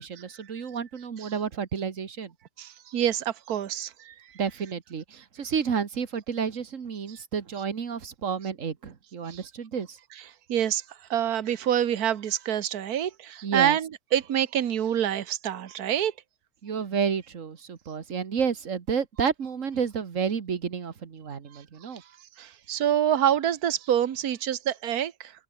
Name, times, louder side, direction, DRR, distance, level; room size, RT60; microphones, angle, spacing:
voice 1, 0.0-2.3 4.4-5.0 5.4-10.0 13.4-13.8 16.6-22.0, right 6 dB, 55° right, 1.8 m, -30 dB
voice 2, 2.6-4.1 7.1-7.2 9.3-9.4 10.5-10.8 11.1-16.1 22.4-25.3, right 10 dB, 70° right, 1.6 m, -26 dB
omnidirectional pair, 1.7 m